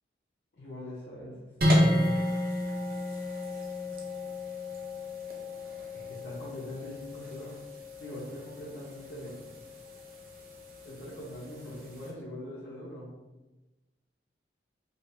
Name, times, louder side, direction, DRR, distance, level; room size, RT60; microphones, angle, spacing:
voice 1, 0.6-2.3 5.9-7.6 8.0-9.5 10.8-13.1, left 1 dB, 75° left, -7 dB, 0.7 m, -42 dB
sound 1, 1.6-12.1, left 1 dB, 55° right, 0.7 m, -32 dB
5.1 x 2.1 x 2.6 m, 1.1 s
head